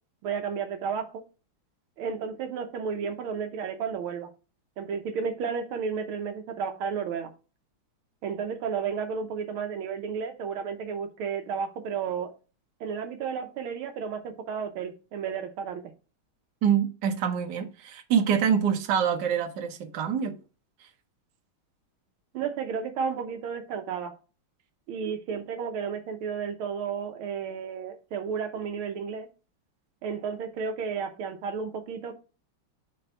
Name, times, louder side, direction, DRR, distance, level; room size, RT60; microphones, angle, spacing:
voice 1, 0.2-1.1 2.0-4.3 4.8-7.3 8.2-12.3 12.8-15.8 22.3-24.1 24.9-29.3 30.0-32.1, right 6 dB, 80° right, 1.6 m, -32 dB
voice 2, 16.6-20.3, right 8 dB, 60° right, 1.4 m, -25 dB
5.6 x 3.3 x 5.5 m
omnidirectional pair, 2.4 m